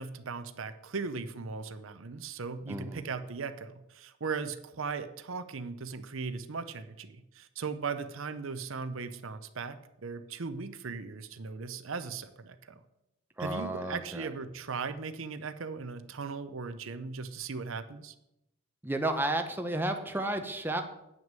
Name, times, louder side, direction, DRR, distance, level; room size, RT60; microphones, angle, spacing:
voice 1, 0.0-12.8 13.4-18.1, right 4 dB, 65° right, 11 dB, 0.7 m, -38 dB
voice 2, 2.7-3.0 13.4-14.3 18.8-20.8, right 1 dB, 10° right, 6 dB, 0.8 m, -32 dB
9.1 x 6.2 x 7.4 m, 0.86 s
head